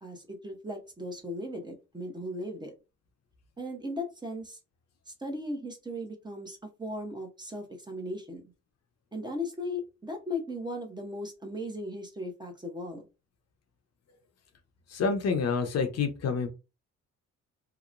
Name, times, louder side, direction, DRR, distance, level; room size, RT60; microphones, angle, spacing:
voice 1, 0.0-2.7 3.6-4.6 5.1-8.4 9.1-13.0, left 1 dB, 15° right, 3 dB, 0.7 m, -37 dB
voice 2, 14.9-16.5, left 5 dB, 55° left, 6 dB, 0.7 m, -28 dB
2.9 x 2.0 x 2.5 m, 0.28 s
cardioid pair, 90°, 30 cm